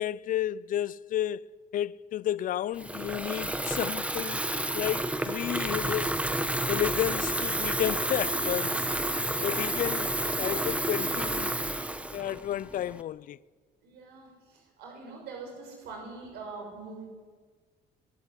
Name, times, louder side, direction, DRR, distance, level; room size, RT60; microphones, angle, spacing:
voice 1, 0.0-1.4 1.7-4.4 4.7-6.1 6.7-8.9 9.4-11.5 12.1-13.4, left 11 dB, 55° left, 0.6 m, -31 dB
Water tap faucet / Fill (with liquid), 2.8-13.0, right 1 dB, 5° right, 1.2 m, -30 dB
voice 2, 9.3-9.8 13.8-17.0, right 4 dB, 80° right, 6.4 m, -44 dB
24.0 x 13.0 x 9.9 m
cardioid pair, 110°, 17 cm